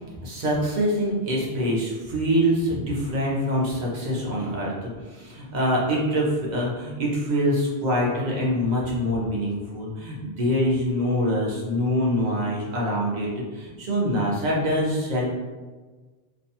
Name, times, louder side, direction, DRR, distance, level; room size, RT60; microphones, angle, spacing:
voice 1, 0.2-15.3, equal, 50° right, -4 dB, 0.7 m, -25 dB
2.5 x 2.2 x 2.7 m, 1.3 s
omnidirectional pair, 1.0 m